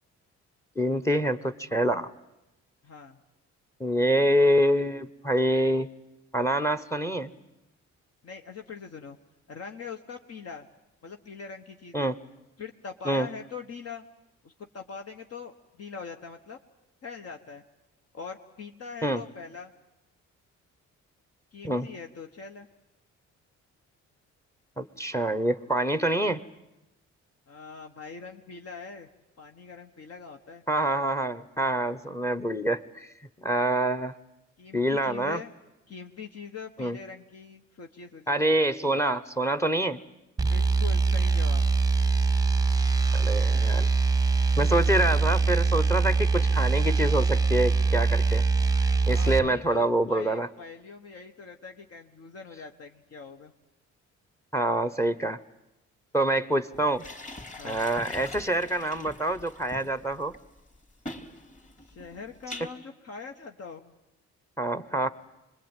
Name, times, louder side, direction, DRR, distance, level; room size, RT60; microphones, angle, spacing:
voice 1, 0.8-2.1 3.8-5.9 6.3-7.3 11.9-12.2 13.0-13.3 19.0-19.2 21.6-21.9 24.8-26.4 30.7-33.1 33.4-34.1 34.7-35.4 36.8-37.0 38.3-40.0 43.1-43.9 44.6-48.4 49.1-50.5 54.5-55.4 56.1-57.0 57.6-60.3 64.6-65.1, right 1 dB, 10° left, 14 dB, 1.0 m, -26 dB
voice 2, 2.8-3.2 8.2-9.2 9.5-10.7 11.0-12.1 12.6-14.1 14.4-16.6 17.0-17.6 18.1-19.7 21.5-22.7 27.5-29.1 29.4-30.6 34.6-35.5 35.9-38.4 40.5-41.6 49.0-53.5 57.6-57.8 61.8-63.9, left 5 dB, 55° left, 4 dB, 1.5 m, -42 dB
sound 1, 40.4-49.5, right 4 dB, 10° right, 0.9 m, -23 dB
sound 2, 56.7-62.7, left 1 dB, 25° left, 3.1 m, -43 dB
25.5 x 21.0 x 9.1 m, 0.94 s
cardioid pair, 90°, 30 cm